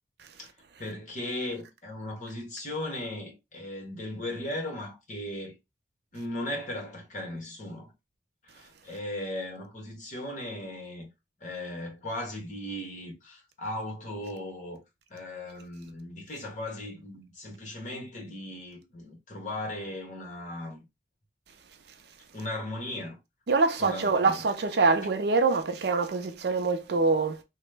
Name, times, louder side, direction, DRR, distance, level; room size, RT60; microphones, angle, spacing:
voice 1, 0.8-5.5 6.1-7.9 8.5-11.1 11.4-14.8 15.1-20.8 22.3-23.2 23.8-24.4, left 1 dB, 40° left, 1.1 m, -37 dB
voice 2, 23.5-27.4, right 4 dB, 55° right, 0.4 m, -25 dB
2.9 x 2.1 x 3.3 m
head